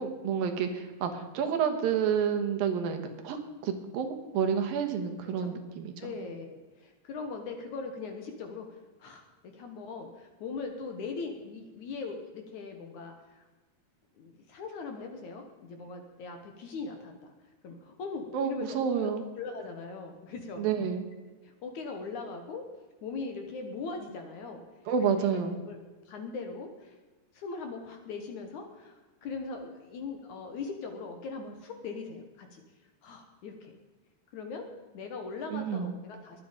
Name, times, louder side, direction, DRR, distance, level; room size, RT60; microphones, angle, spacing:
voice 1, 0.0-6.1 18.3-19.2 20.6-21.0 24.9-25.6 35.5-35.9, right 7 dB, 70° right, 6 dB, 2.9 m, -29 dB
voice 2, 6.0-9.2 9.5-13.5 14.2-17.3 17.6-18.8 19.0-20.7 21.4-22.6 23.0-24.6 25.0-25.8 26.1-27.0 27.3-32.6 33.0-33.7 34.3-34.7 34.9-36.4, left 4 dB, 60° left, 5 dB, 2.3 m, -40 dB
22.0 x 8.7 x 5.1 m, 1.3 s
omnidirectional pair, 4.5 m